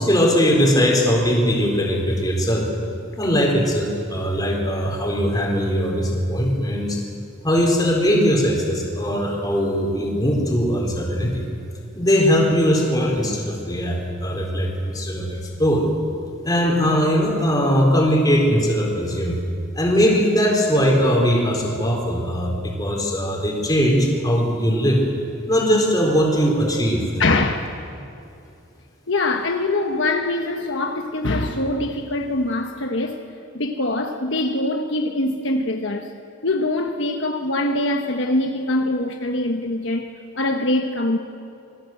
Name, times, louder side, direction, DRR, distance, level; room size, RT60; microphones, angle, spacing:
voice 1, 0.0-2.7 3.2-7.0 7.4-11.5 11.9-15.9 16.4-19.4 19.8-25.0 25.5-27.0, equal, 20° left, 4.3 m, -20 dB
voice 2, 27.2-27.7 29.1-33.2 33.5-36.1 36.4-41.2, left 2 dB, 65° left, 1.3 m, -23 dB
26.5 x 20.5 x 7.9 m
head